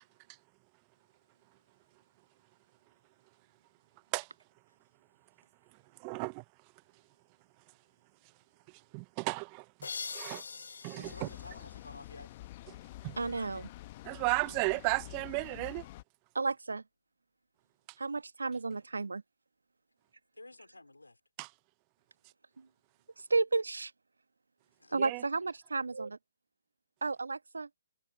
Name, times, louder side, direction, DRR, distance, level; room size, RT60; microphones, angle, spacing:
voice 1, 6.0-6.4 8.7-10.4 10.8-11.3 13.0-13.2 14.0-15.9 21.4-21.5 25.0-25.2, right 38 dB, 30° right, 0.5 m, -34 dB
sound 1, 9.8-12.5, left 5 dB, 65° left, 0.7 m, -44 dB
voice 2, 10.9-12.3 20.3-21.2 24.8-25.0, left 2 dB, 90° left, 4.5 m, -51 dB
sound 2, 11.0-16.0, left 17 dB, 35° left, 0.9 m, -48 dB
voice 3, 13.2-13.7 16.3-16.8 18.0-19.2 23.3-23.9 24.9-26.2 27.0-27.7, right 4 dB, 75° right, 1.3 m, -32 dB
figure-of-eight pair, 135°, 0 cm